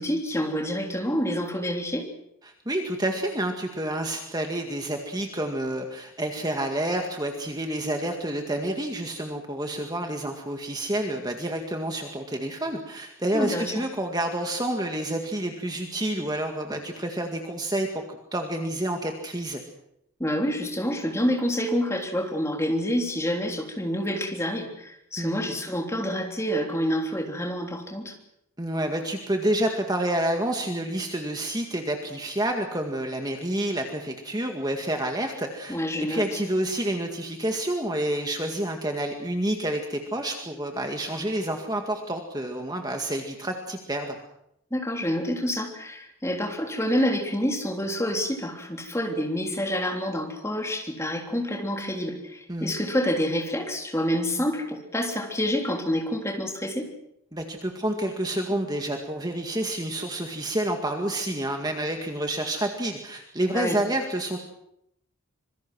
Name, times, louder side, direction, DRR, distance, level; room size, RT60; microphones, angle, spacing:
voice 1, 0.0-2.1 13.3-13.8 20.2-28.2 35.7-36.2 44.7-56.9 63.5-63.8, equal, 15° left, 2 dB, 3.4 m, -27 dB
voice 2, 2.4-17.9 18.3-19.6 25.2-25.4 28.6-44.2 52.5-52.7 57.3-64.4, right 1 dB, 20° right, 3 dB, 2.0 m, -29 dB
26.0 x 23.5 x 6.3 m, 0.77 s
head